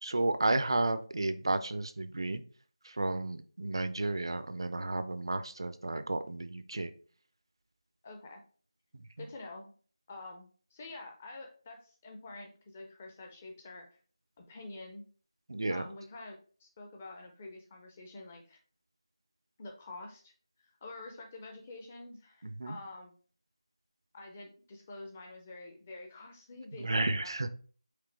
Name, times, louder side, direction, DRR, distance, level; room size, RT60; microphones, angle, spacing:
voice 1, 0.0-2.4 2.8-6.9 8.9-9.3 15.5-15.8 22.4-22.8 26.7-27.5, right 2 dB, 55° right, 11 dB, 0.4 m, -32 dB
voice 2, 8.0-8.4 9.2-9.7 10.1-13.9 14.4-15.0 15.7-18.6 19.6-20.3 20.8-23.1 24.1-27.5, left 2 dB, 15° left, 2 dB, 0.5 m, -47 dB
5.0 x 3.2 x 3.2 m, 0.42 s
figure-of-eight pair, 170°, 3 cm